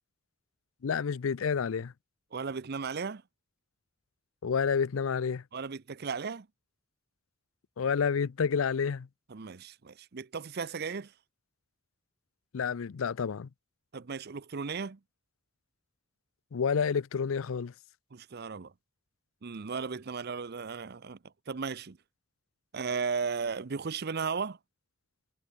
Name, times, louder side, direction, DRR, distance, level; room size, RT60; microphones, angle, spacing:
voice 1, 0.8-1.9 4.4-5.4 7.8-9.1 12.5-13.5 16.5-17.7, left 6 dB, 80° left, 0.5 m, -29 dB
voice 2, 2.3-3.2 5.5-6.5 9.3-11.1 13.9-15.0 18.1-18.7 19.4-21.2 21.5-22.0 22.7-24.6, right 5 dB, 50° right, 0.6 m, -35 dB
head